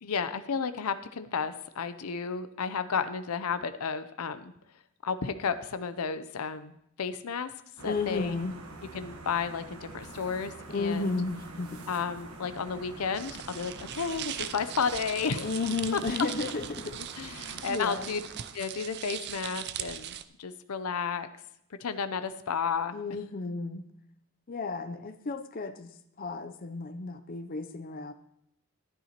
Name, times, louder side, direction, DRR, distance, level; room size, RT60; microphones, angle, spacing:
voice 1, 0.0-4.5 5.0-7.5 7.8-8.4 8.9-11.1 11.9-15.5 15.9-16.0 17.2-18.2 18.5-21.3 21.8-23.0, left 6 dB, 85° left, 12 dB, 0.6 m, -32 dB
voice 2, 7.8-8.5 10.7-11.9 15.4-17.1 17.7-18.1 22.9-23.8 24.5-25.9 26.2-28.1, left 3 dB, 40° left, 10 dB, 0.5 m, -33 dB
sound 1, 7.8-19.0, right 2 dB, 85° right, 1.2 m, -46 dB
sound 2, 13.1-20.2, right 10 dB, 50° right, 0.4 m, -40 dB
12.5 x 11.0 x 2.9 m, 0.76 s
head